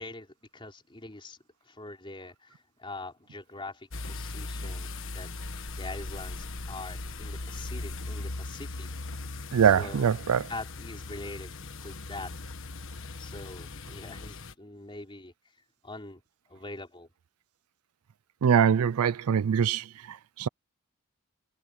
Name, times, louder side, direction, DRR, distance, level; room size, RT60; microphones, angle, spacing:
voice 1, 0.0-1.4 1.6-8.9 9.6-10.1 10.5-11.5 11.8-12.3 13.2-15.3 15.8-16.2 16.5-17.1, left 2 dB, 25° left, 4.1 m, -43 dB
sound 1, 3.9-14.5, left 2 dB, 60° left, 1.4 m, -39 dB
voice 2, 9.5-10.4 18.4-20.5, right 7 dB, 80° right, 0.4 m, -23 dB
head